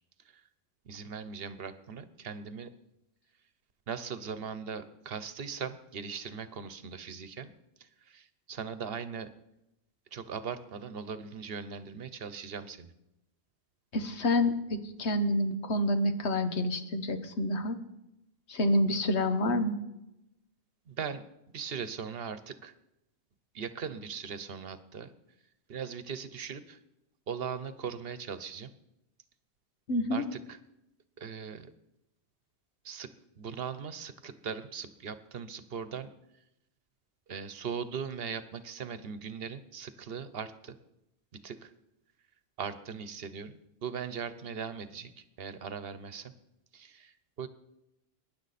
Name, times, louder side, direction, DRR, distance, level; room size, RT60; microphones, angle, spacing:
voice 1, 0.8-2.7 3.9-7.5 7.8-9.3 10.1-12.9 20.9-21.2 21.5-22.7 23.5-25.1 25.7-26.8 27.3-28.7 30.1-30.6 31.2-31.7 32.8-36.1 37.3-40.8 41.3-41.7 42.6-46.3 46.7-47.5, right 6 dB, 65° right, 12 dB, 1.0 m, -39 dB
voice 2, 13.9-17.8 18.5-19.8 29.9-30.2, left 1 dB, 85° left, 9 dB, 1.5 m, -28 dB
22.0 x 10.5 x 4.2 m, 0.88 s
omnidirectional pair, 1.1 m